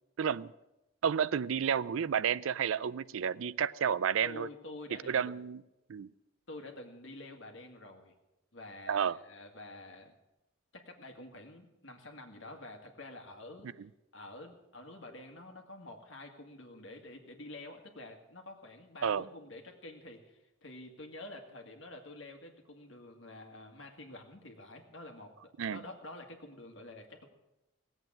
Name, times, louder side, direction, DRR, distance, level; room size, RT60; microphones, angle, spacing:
voice 1, 0.2-0.5 1.0-4.5 5.1-5.6 5.9-6.1 8.9-9.2 19.0-19.2 25.6-25.8, right 7 dB, 80° right, 19 dB, 0.4 m, -31 dB
voice 2, 4.2-5.3 6.5-8.1 8.5-10.2 10.7-13.7 14.1-27.3, left 2 dB, 65° left, 3 dB, 2.0 m, -48 dB
18.0 x 8.1 x 7.5 m, 0.97 s
head